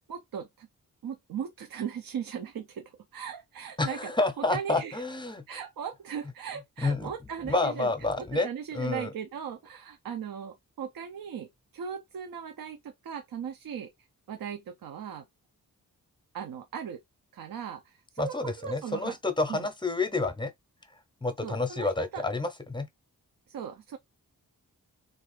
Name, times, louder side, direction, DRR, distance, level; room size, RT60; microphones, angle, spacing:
voice 1, 0.1-0.7 1.0-4.1 4.4-5.0 5.5-15.2 16.3-17.0 17.3-19.2 19.5-19.7 21.4-22.2 23.5-24.0, right 8 dB, 80° right, 0.6 m, -38 dB
voice 2, 3.8-5.4 6.8-7.1 7.4-8.5 8.7-9.1 18.2-20.5 21.2-22.9, left 3 dB, 15° left, 0.6 m, -29 dB
3.3 x 2.6 x 3.1 m
wide cardioid pair, 95°, 34 cm